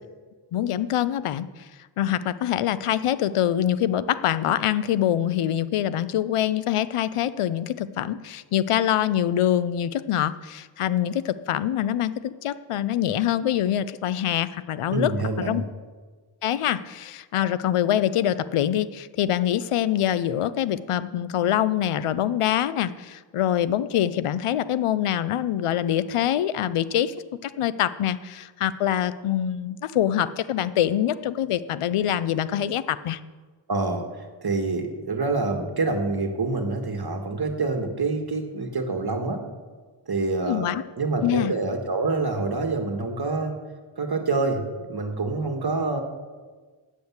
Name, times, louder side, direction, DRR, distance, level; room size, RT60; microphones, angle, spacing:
voice 1, 0.5-1.5 2.0-15.1 15.4-15.6 16.4-27.1 27.4-33.2 40.5-40.8 41.2-41.5, left 11 dB, 90° left, 16 dB, 0.6 m, -24 dB
voice 2, 14.9-15.6 33.7-39.4 40.1-43.6 44.0-46.0, right 3 dB, 50° right, 4 dB, 1.5 m, -27 dB
8.4 x 7.9 x 7.0 m, 1.4 s
wide cardioid pair, 65°, 50 cm